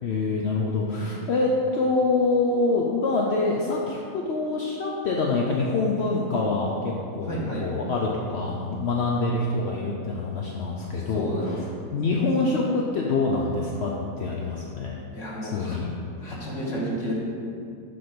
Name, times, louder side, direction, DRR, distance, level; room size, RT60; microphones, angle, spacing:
voice 1, 0.0-13.9 14.2-15.0 15.4-15.9, left 3 dB, 70° left, -2 dB, 0.6 m, -25 dB
voice 2, 7.2-7.6 10.9-11.6 15.1-15.8 16.2-17.1, equal, 50° left, -5 dB, 1.6 m, -32 dB
7.8 x 3.4 x 5.9 m, 2.4 s
omnidirectional pair, 1.8 m